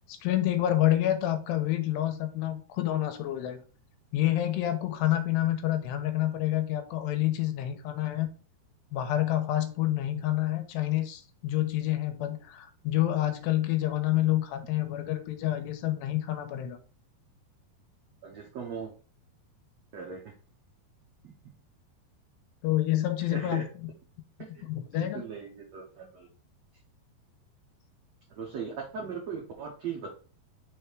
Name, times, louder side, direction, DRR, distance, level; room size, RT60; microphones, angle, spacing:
voice 1, 0.1-3.6 4.1-8.3 8.9-16.8 22.6-23.6 24.7-25.2, left 14 dB, 85° left, 7 dB, 2.9 m, -28 dB
voice 2, 18.2-18.9 19.9-20.2 23.3-23.6 24.4-26.3 28.3-30.1, right 6 dB, 90° right, -2 dB, 1.4 m, -38 dB
6.2 x 3.5 x 4.6 m, 0.37 s
omnidirectional pair, 4.9 m